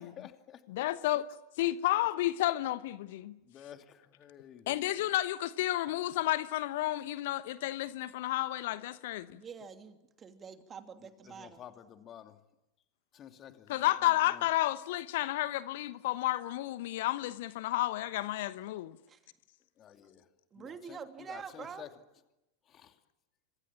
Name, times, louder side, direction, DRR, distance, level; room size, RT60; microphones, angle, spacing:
voice 1, 0.0-0.6 1.0-1.1 3.4-4.8 11.0-12.4 13.1-14.5 19.8-20.3 20.6-21.9 22.7-23.0, left 9 dB, 30° left, 2.7 m, -52 dB
voice 2, 0.7-1.2 1.6-3.3 4.7-9.4 13.7-19.0, left 16 dB, 50° left, 1.0 m, -31 dB
voice 3, 9.3-11.6 19.1-19.2 20.5-21.9, right 6 dB, 20° right, 2.8 m, -46 dB
29.5 x 26.5 x 7.4 m
figure-of-eight pair, 90°, 0 cm